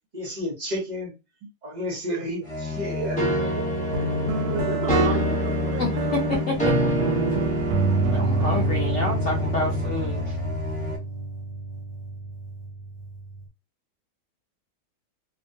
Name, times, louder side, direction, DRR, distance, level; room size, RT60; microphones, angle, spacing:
voice 1, 0.1-1.1 1.6-3.5 3.8-4.0, left 1 dB, 50° right, 0.5 m, -32 dB
voice 2, 2.1-2.4 3.0-3.1 3.6-3.7 4.5-6.1, right 7 dB, 85° right, 1.3 m, -33 dB
sound 1, 2.4-11.0, left 4 dB, 25° left, 1.1 m, -31 dB
sound 2, 3.2-10.0, right 2 dB, 5° left, 0.7 m, -28 dB
Guitar, 3.9-13.4, right 2 dB, 70° right, 1.0 m, -28 dB
voice 3, 5.8-6.8 7.0-7.1 8.1-10.4, left 2 dB, 65° left, 0.7 m, -29 dB
2.8 x 2.2 x 2.6 m
omnidirectional pair, 1.9 m